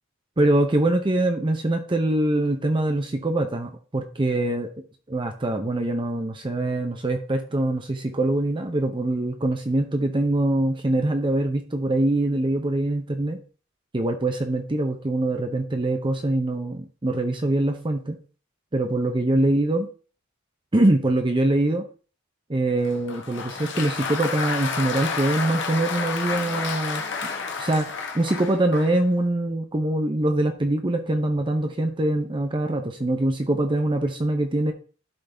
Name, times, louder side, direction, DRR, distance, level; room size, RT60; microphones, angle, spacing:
voice 1, 0.4-4.7 5.1-13.4 13.9-18.2 18.7-19.9 20.7-21.8 22.5-27.0 27.6-34.7, right 1 dB, 25° right, 5 dB, 0.7 m, -23 dB
Applause, 22.9-29.0, left 5 dB, 65° left, 1.2 m, -30 dB
11.5 x 3.9 x 3.4 m, 0.38 s
head